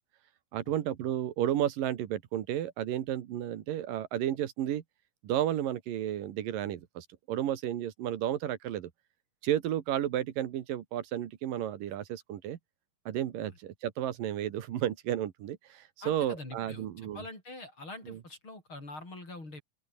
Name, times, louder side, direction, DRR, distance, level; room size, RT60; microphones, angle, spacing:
voice 1, 0.5-4.8 5.2-8.9 9.4-12.6 13.1-17.2 18.1-18.2, right 11 dB, 85° right, 3.2 m, -32 dB
voice 2, 16.0-19.6, left 2 dB, 35° left, 8.8 m, -45 dB
open air
omnidirectional pair, 3.9 m